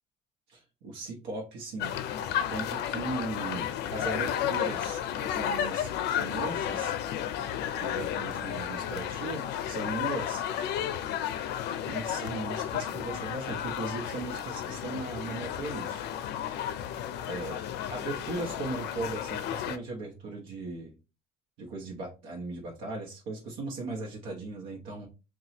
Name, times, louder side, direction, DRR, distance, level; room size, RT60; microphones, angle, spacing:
voice 1, 0.5-1.9 2.5-7.0 7.8-10.4 11.8-16.1 17.2-17.6 17.9-20.9 21.6-25.1, right 2 dB, 90° right, -2 dB, 0.8 m, -38 dB
sound 1, 1.8-19.8, left 10 dB, 80° left, 0.4 m, -33 dB
2.9 x 2.3 x 4.1 m, 0.30 s
cardioid pair, 110°, 17 cm